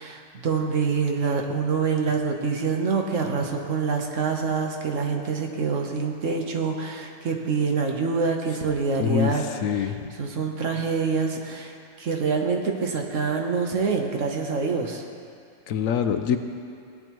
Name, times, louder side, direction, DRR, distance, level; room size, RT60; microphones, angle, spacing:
voice 1, 0.0-11.7 12.0-15.0, right 5 dB, 70° right, 2 dB, 1.3 m, -26 dB
voice 2, 9.0-9.3 9.6-9.9 15.7-16.4, left 8 dB, 80° left, 7 dB, 1.0 m, -24 dB
17.0 x 9.3 x 3.0 m, 2.4 s
omnidirectional pair, 1.4 m